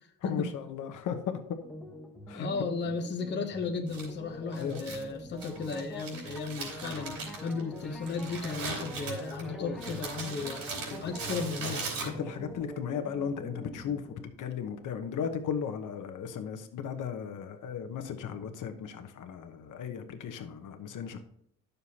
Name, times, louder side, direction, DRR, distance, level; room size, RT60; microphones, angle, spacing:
voice 1, 0.2-1.6 2.3-2.5 4.6-4.8 9.4-10.0 10.9-11.0 12.0-21.2, left 7 dB, 65° left, 6 dB, 1.0 m, -36 dB
sound 1, 1.6-14.3, equal, ahead, 1.2 m, -44 dB
voice 2, 2.3-11.9, left 4 dB, 30° left, 3 dB, 0.9 m, -35 dB
Crumpling crinkling, 3.9-12.5, right 3 dB, 85° right, 3.1 m, -40 dB
11.0 x 6.8 x 2.9 m, 0.73 s
cardioid pair, 170°, 34 cm